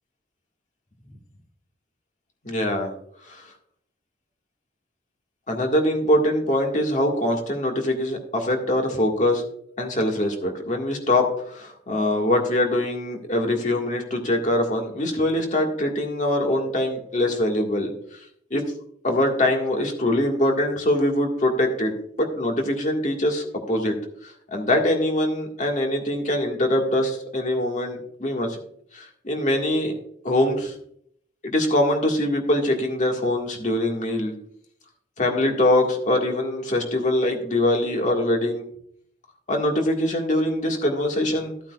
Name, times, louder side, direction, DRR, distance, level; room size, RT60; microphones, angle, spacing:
voice 1, 2.4-2.9 3.3-3.4 5.5-9.4 9.8-17.9 18.5-18.6 19.0-21.9 22.2-23.9 24.2-28.6 28.9-29.9 30.2-30.7 31.4-34.3 35.2-38.7 39.5-41.5, left 1 dB, 40° left, 2 dB, 1.8 m, -23 dB
14.0 x 8.7 x 2.4 m, 0.67 s
head